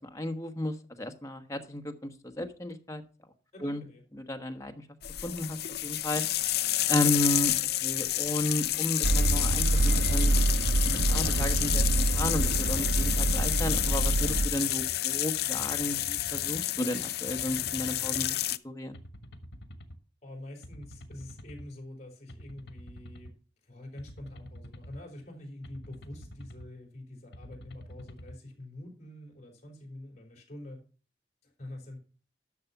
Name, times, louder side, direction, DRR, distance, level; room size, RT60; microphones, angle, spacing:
voice 1, 0.0-3.0 3.6-3.8 4.1-4.7 5.2-6.2 6.9-7.5 7.8-10.3 11.0-18.4 18.6-19.0, left 1 dB, 20° left, 6 dB, 1.2 m, -33 dB
voice 2, 3.5-4.0 20.2-23.3 23.6-30.8 31.4-32.0, left 1 dB, 40° left, 0 dB, 4.6 m, -46 dB
sound 1, 5.0-18.6, left 14 dB, 60° left, 0.5 m, -30 dB
sound 2, 9.0-14.5, right 2 dB, 70° right, 0.6 m, -26 dB
sound 3, 10.6-11.6 12.2-13.3 13.9-15.0 15.6-16.6 17.3-18.3 18.9-20.0 20.6-21.7 22.3-23.3 24.0-25.0 25.6-26.7 27.3-28.4, equal, 75° left, 1.5 m, -47 dB
11.0 x 6.6 x 5.8 m, 0.38 s
head